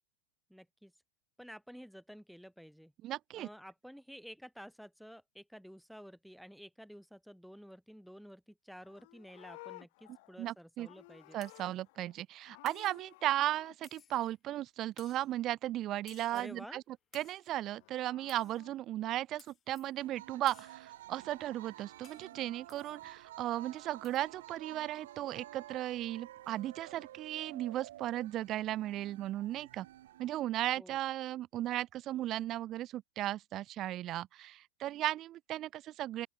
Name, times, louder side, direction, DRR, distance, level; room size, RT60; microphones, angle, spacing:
voice 1, 0.5-0.9 1.4-2.9 3.3-11.4 16.3-16.8 30.7-31.0, equal, ahead, 0.9 m, -51 dB
voice 2, 3.0-3.5 10.4-10.9 11.3-16.8 17.1-29.9 30.2-36.3, right 14 dB, 35° right, 0.4 m, -36 dB
Livestock farm animals working animals, 8.7-12.2 12.4-13.8 17.5-18.7, left 24 dB, 50° left, 2.4 m, -56 dB
sound 1, 11.4-11.7 12.6-13.1 13.8-14.3 15.0-15.3 16.1-16.6 17.1-17.5 18.3-18.6 19.4-19.9 20.5-20.9 22.0-22.3 22.7-23.0 24.0-24.3, left 9 dB, 25° left, 6.7 m, -60 dB
sound 2, 20.0-30.3, right 14 dB, 55° right, 1.3 m, -52 dB
open air
figure-of-eight pair, 90°, 0 cm